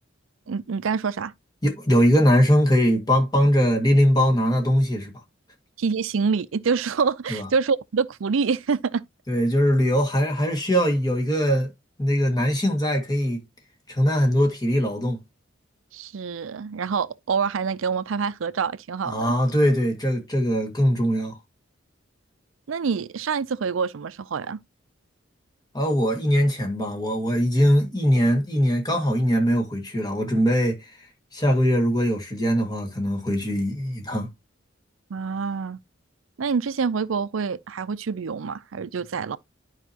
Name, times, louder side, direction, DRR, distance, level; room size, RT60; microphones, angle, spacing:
voice 1, 0.5-1.3 5.8-9.0 15.9-19.2 22.7-24.6 35.1-35.8 36.4-39.4, right 5 dB, 90° right, 0.5 m, -26 dB
voice 2, 1.6-5.1 7.3-7.5 9.3-11.7 12.0-13.4 13.9-15.2 19.1-21.3 25.7-30.9 31.3-34.3, equal, 20° left, 1.9 m, -21 dB
11.0 x 4.9 x 2.8 m
head